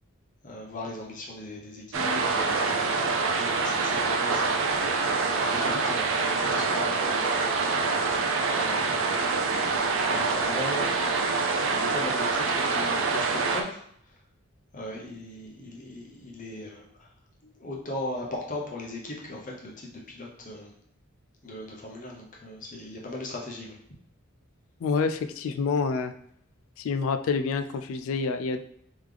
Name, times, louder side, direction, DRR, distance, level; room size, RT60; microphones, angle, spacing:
voice 1, 0.4-4.8 5.4-7.3 8.5-9.2 10.1-11.4 11.7-13.8 14.7-17.1 17.4-20.7 21.4-23.8, left 1 dB, 35° left, -2 dB, 0.8 m, -38 dB
sound 1, 1.9-13.6, right 4 dB, 60° right, 0.5 m, -26 dB
voice 2, 24.8-26.1 26.8-28.6, left 4 dB, 65° left, 8 dB, 0.3 m, -27 dB
3.6 x 3.1 x 3.3 m, 0.68 s
head